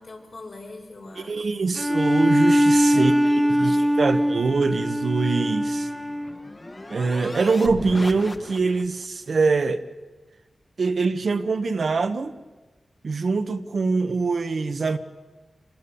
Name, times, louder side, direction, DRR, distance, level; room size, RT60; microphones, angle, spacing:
voice 1, 0.0-1.7 2.9-4.4, left 2 dB, 70° left, 6.8 m, -41 dB
voice 2, 1.2-3.1 3.6-5.9 6.9-9.8 10.8-12.3 13.0-15.0, right 4 dB, 70° right, 1.2 m, -23 dB
Bowed string instrument, 1.8-6.5, equal, ahead, 0.8 m, -21 dB
sound 1, 5.4-9.0, left 1 dB, 35° left, 1.7 m, -37 dB
27.0 x 21.0 x 7.1 m
wide cardioid pair, 65°, 0 cm